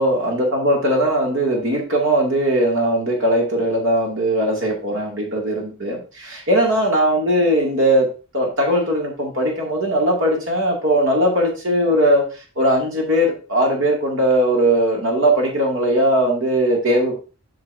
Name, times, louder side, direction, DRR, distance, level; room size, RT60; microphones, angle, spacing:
voice 1, 0.0-8.1 8.3-12.2 12.6-17.2, right 1 dB, 65° right, -1 dB, 2.4 m, -19 dB
8.0 x 5.8 x 2.7 m, 0.34 s
head